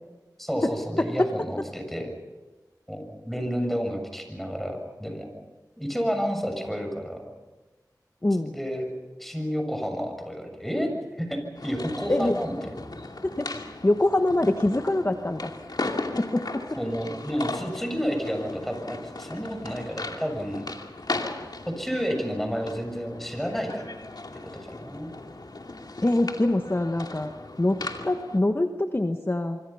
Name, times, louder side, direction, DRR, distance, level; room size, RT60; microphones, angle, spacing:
voice 1, 0.4-2.2 2.9-5.3 5.8-7.3 8.4-8.9 9.2-12.6 16.7-20.7 21.7-24.0 24.5-25.1, equal, 5° left, 5 dB, 7.0 m, -30 dB
voice 2, 8.2-8.5 12.1-12.4 13.4-13.5 13.8-15.5 16.1-16.6 26.0-27.3 27.6-29.6, left 1 dB, 35° left, 5 dB, 1.4 m, -24 dB
sound 1, 11.5-28.4, left 2 dB, 70° left, 2.6 m, -37 dB
26.0 x 25.0 x 5.8 m, 1.2 s
wide cardioid pair, 45°, 7 cm